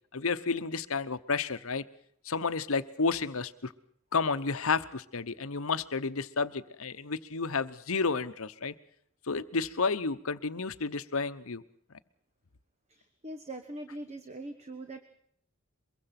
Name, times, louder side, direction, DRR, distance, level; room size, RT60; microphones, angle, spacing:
voice 1, 0.1-1.8 2.2-3.7 4.1-8.7 9.3-11.6, left 4 dB, 70° left, 12 dB, 1.0 m, -31 dB
voice 2, 13.2-15.0, right 1 dB, 30° right, 8 dB, 1.2 m, -41 dB
23.0 x 22.5 x 5.9 m, 0.65 s
head